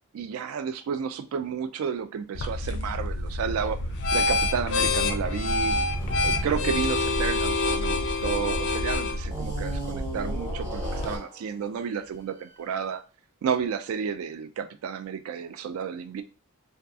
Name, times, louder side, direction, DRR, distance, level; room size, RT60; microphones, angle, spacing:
voice 1, 0.1-3.8 4.1-5.8 6.2-13.0 13.4-16.2, right 7 dB, 70° right, 0.3 m, -31 dB
sound 1, 2.3-11.2, left 2 dB, 55° left, 0.3 m, -27 dB
sound 2, 3.8-8.6 9.3-11.4, right 2 dB, 40° right, 1.3 m, -37 dB
2.6 x 2.3 x 2.3 m
head